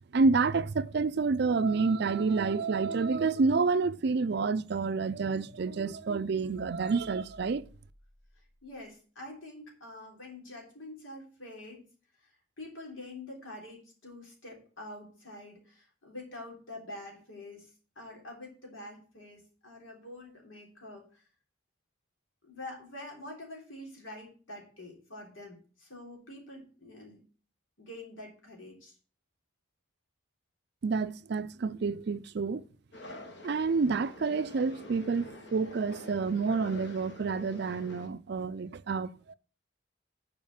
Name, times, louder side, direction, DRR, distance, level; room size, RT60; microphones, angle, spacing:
voice 1, 0.1-7.6 30.8-32.6 33.4-39.3, right 4 dB, 55° right, 0.4 m, -29 dB
sound 1, 2.3-8.9, left 1 dB, 35° left, 4.2 m, -58 dB
voice 2, 8.6-11.9 12.2-12.3 12.6-17.7 18.0-21.2 22.4-27.2 27.8-29.0, left 1 dB, 85° left, 3.5 m, -46 dB
sound 2, 32.9-38.1, left 1 dB, 60° left, 1.4 m, -47 dB
7.3 x 5.0 x 7.1 m
head